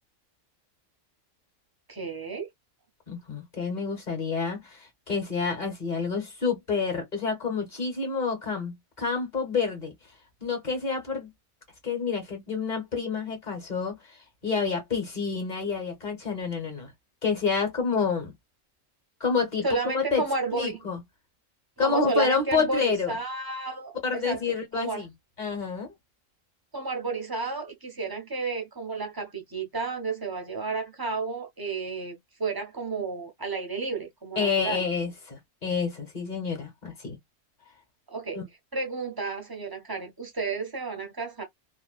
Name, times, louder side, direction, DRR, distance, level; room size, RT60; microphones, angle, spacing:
voice 1, 1.9-2.5 19.6-20.8 21.8-25.1 26.7-34.8 38.1-38.4 38.7-41.4, right 4 dB, 30° right, 0.4 m, -32 dB
voice 2, 3.1-9.9 10.4-11.3 11.8-14.0 14.4-16.9 17.2-18.3 19.2-19.6 19.9-20.2 20.6-21.0 21.8-23.1 24.0-25.1 25.4-25.9 34.3-37.2 38.3-38.4, left 5 dB, 35° left, 1.2 m, -28 dB
2.6 x 2.4 x 2.3 m
omnidirectional pair, 1.4 m